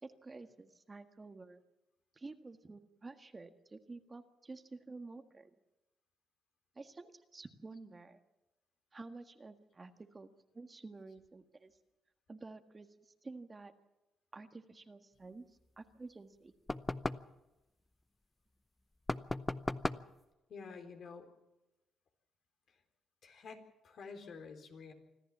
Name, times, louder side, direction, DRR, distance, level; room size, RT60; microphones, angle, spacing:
voice 1, 0.0-1.6 2.1-5.5 6.7-8.2 8.9-10.3 10.5-11.8 12.3-13.7 14.3-16.5, right 3 dB, 25° right, 7 dB, 1.6 m, -51 dB
sound 1, 16.7-17.3 19.1-20.1, left 2 dB, 15° left, 0.7 m, -37 dB
voice 2, 20.5-21.3 22.7-22.8 23.2-24.9, left 5 dB, 60° left, 5 dB, 4.0 m, -50 dB
25.5 x 14.0 x 7.4 m, 0.99 s
cardioid pair, 90°, 0 cm